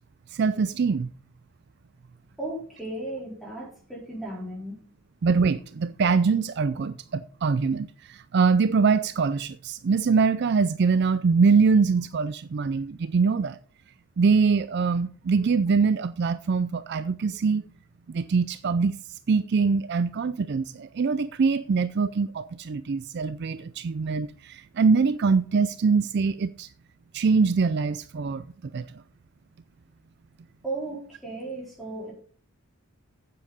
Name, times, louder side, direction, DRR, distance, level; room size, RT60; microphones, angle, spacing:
voice 1, 0.3-1.1 5.2-13.6 14.2-17.6 18.1-18.9 19.3-26.7 27.1-28.4 28.7-29.0, right 5 dB, 50° right, 0.4 m, -23 dB
voice 2, 2.4-4.8 30.6-32.1, right 2 dB, ahead, 4.0 m, -35 dB
8.6 x 7.6 x 5.3 m
head